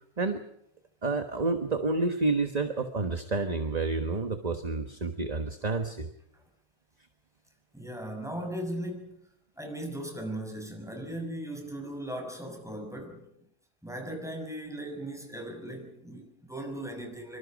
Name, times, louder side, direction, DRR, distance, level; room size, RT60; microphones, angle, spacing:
voice 1, 1.0-6.1, right 3 dB, 25° right, 7 dB, 1.3 m, -29 dB
voice 2, 7.7-9.2 9.6-13.3 13.8-17.4, right 1 dB, ahead, 3 dB, 6.2 m, -38 dB
26.0 x 25.0 x 5.2 m, 0.75 s
omnidirectional pair, 1.6 m